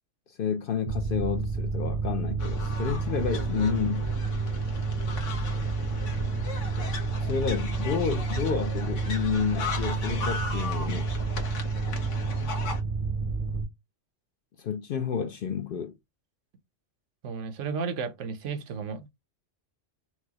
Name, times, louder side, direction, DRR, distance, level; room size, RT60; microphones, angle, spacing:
voice 1, 0.4-4.1 7.2-11.1 14.6-16.0, left 7 dB, 60° left, 0.6 m, -30 dB
Mechanical fan, 0.9-13.6, right 4 dB, 40° right, 0.5 m, -30 dB
sound 1, 2.4-12.8, left 5 dB, 75° left, 1.2 m, -38 dB
voice 2, 17.2-19.1, right 5 dB, 75° right, 1.0 m, -33 dB
4.5 x 2.0 x 2.8 m
omnidirectional pair, 1.3 m